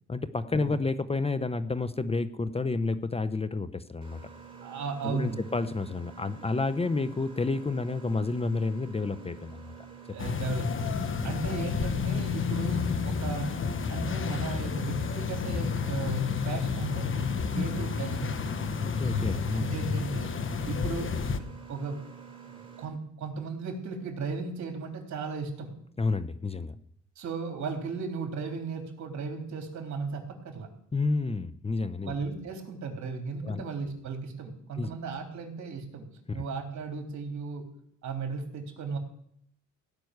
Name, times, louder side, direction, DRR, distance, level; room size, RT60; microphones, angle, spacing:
voice 1, 0.1-4.2 5.0-9.6 17.5-17.7 18.8-19.7 26.0-26.8 30.9-32.1 33.4-33.6 34.8-34.9 36.3-36.4, left 3 dB, 20° left, 12 dB, 0.8 m, -30 dB
Mechanisms, 4.0-22.9, right 7 dB, 20° right, 6.4 m, -48 dB
voice 2, 4.6-5.4 10.1-10.9 11.2-13.5 13.9-17.2 17.5-19.0 19.5-20.3 20.6-22.0 22.5-25.7 27.2-30.7 32.0-36.1 36.3-37.6 38.0-39.0, right 4 dB, 65° right, 3 dB, 3.6 m, -36 dB
sound 1, 10.2-21.4, left 5 dB, 40° left, 1.2 m, -30 dB
17.0 x 6.2 x 9.4 m, 0.71 s
cardioid pair, 90°, 30 cm